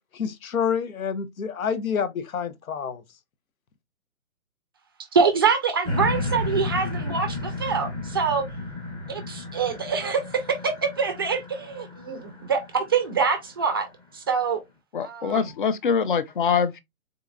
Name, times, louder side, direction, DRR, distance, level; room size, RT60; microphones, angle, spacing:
voice 1, 0.1-3.0, left 7 dB, 75° left, 0.8 m, -28 dB
voice 2, 5.1-8.5 9.1-13.9 14.1-14.6 15.0-15.5, right 5 dB, 20° right, 0.4 m, -25 dB
sound 1, 5.9-13.2 13.8-13.9, left 2 dB, 15° left, 0.7 m, -32 dB
voice 3, 14.9-16.8, left 6 dB, 40° left, 0.4 m, -24 dB
3.8 x 3.8 x 2.3 m
figure-of-eight pair, 135°, 42 cm